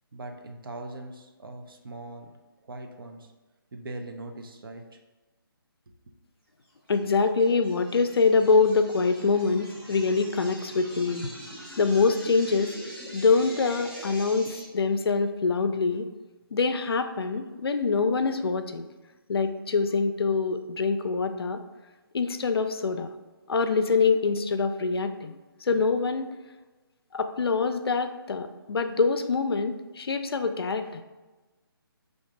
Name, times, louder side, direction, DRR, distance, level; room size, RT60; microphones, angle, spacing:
voice 1, 0.1-2.3 2.7-3.3 3.7-4.8, right 2 dB, 65° right, 5 dB, 0.6 m, -40 dB
voice 2, 6.9-11.3 11.8-12.8 13.1-16.1 16.5-18.9 19.3-21.6 22.1-23.1 23.5-25.4 25.6-26.3 27.1-31.0, left 4 dB, 80° left, 8 dB, 0.4 m, -25 dB
sound 1, 6.9-14.7, equal, 10° right, 0.4 m, -43 dB
3.5 x 2.6 x 4.6 m, 1.2 s
hypercardioid pair, 165°, 13 cm